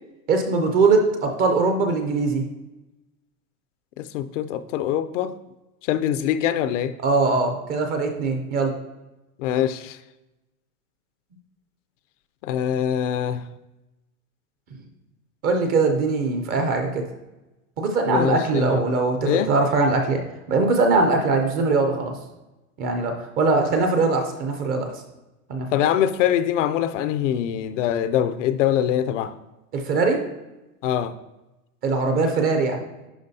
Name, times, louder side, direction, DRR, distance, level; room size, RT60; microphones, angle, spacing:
voice 1, 0.3-2.4 7.0-8.7 15.4-17.0 17.8-20.2 20.5-22.1 22.8-24.9 25.5-25.9 29.7-30.2 31.8-32.8, right 3 dB, 20° right, 0.4 m, -21 dB
voice 2, 4.0-5.3 5.9-6.9 9.4-10.0 12.4-13.4 18.1-18.8 19.3-19.5 25.7-29.3 30.8-31.1, left 10 dB, 60° left, 0.5 m, -23 dB
11.0 x 3.7 x 2.7 m
supercardioid pair, 145°, 44 cm